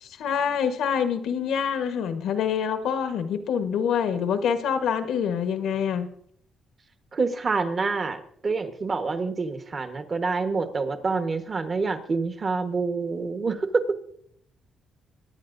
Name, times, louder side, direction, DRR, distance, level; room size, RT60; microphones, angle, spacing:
voice 1, 0.2-6.1, left 7 dB, 80° left, 8 dB, 1.2 m, -26 dB
voice 2, 7.1-14.0, right 4 dB, 40° right, 7 dB, 1.2 m, -27 dB
21.5 x 10.0 x 2.6 m, 0.68 s
cardioid pair, 90°, 0 cm